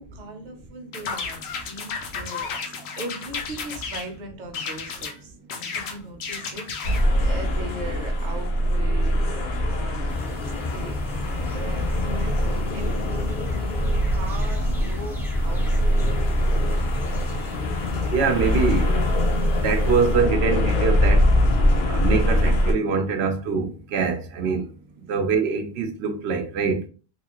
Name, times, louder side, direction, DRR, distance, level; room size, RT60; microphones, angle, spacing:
voice 1, 0.0-11.2 11.5-16.1, right 2 dB, 50° right, 0.8 m, -40 dB
sound 1, 0.9-4.1 4.5-5.2 5.5-7.1, left 5 dB, 90° left, 0.9 m, -33 dB
sound 2, 6.8-22.7, left 1 dB, 60° left, 0.7 m, -23 dB
sound 3, 10.1-20.2, left 2 dB, 5° right, 0.5 m, -34 dB
voice 2, 18.1-19.0 19.6-21.3 21.9-24.7 25.1-26.8, right 5 dB, 85° right, 0.9 m, -24 dB
3.1 x 2.3 x 2.9 m
omnidirectional pair, 1.1 m